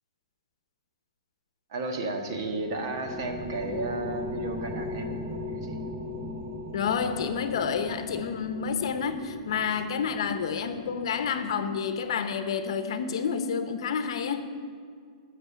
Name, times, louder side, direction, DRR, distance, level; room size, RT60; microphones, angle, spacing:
voice 1, 1.7-5.8, right 2 dB, 40° right, 5 dB, 1.5 m, -34 dB
sound 1, 2.3-12.1, left 2 dB, 5° right, 0.9 m, -38 dB
voice 2, 6.7-14.4, left 6 dB, 55° left, 10 dB, 0.9 m, -29 dB
13.5 x 6.7 x 8.4 m, 2.1 s
hypercardioid pair, 170°, 3 cm